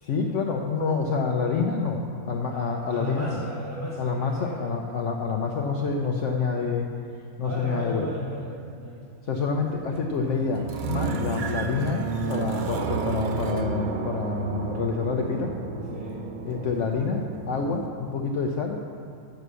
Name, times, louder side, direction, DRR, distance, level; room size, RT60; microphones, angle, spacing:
voice 1, 0.0-3.4 4.0-6.9 7.4-8.1 9.3-15.5 16.4-18.8, left 5 dB, 65° left, 2 dB, 0.9 m, -27 dB
voice 2, 2.5-4.7 7.4-9.1 12.5-12.7 15.9-16.2, equal, 10° left, -5 dB, 1.1 m, -36 dB
sound 1, 9.3-17.9, right 4 dB, 60° right, 0.5 m, -31 dB
9.2 x 6.2 x 6.8 m, 2.3 s
omnidirectional pair, 1.5 m